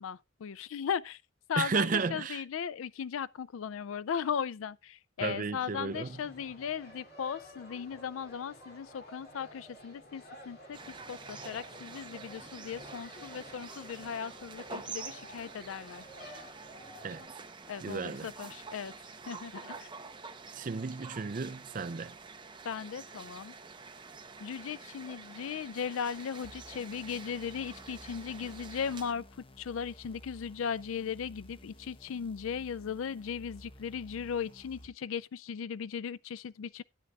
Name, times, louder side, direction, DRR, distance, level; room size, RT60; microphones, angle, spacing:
voice 1, 0.0-1.2 1.5-10.8 11.1-16.0 17.7-18.9 19.3-19.9 22.6-23.5 24.4-29.2 29.6-36.8, left 7 dB, 85° left, 0.4 m, -37 dB
voice 2, 1.6-2.4 5.2-6.2 17.0-17.3 17.8-18.3 20.5-22.1, right 5 dB, 40° right, 0.4 m, -33 dB
sound 1, 5.9-17.3, left 1 dB, 50° left, 3.0 m, -52 dB
sound 2, 10.7-29.1, right 4 dB, 25° right, 0.8 m, -47 dB
sound 3, 26.4-34.9, equal, 25° left, 0.8 m, -54 dB
13.0 x 9.6 x 2.4 m
head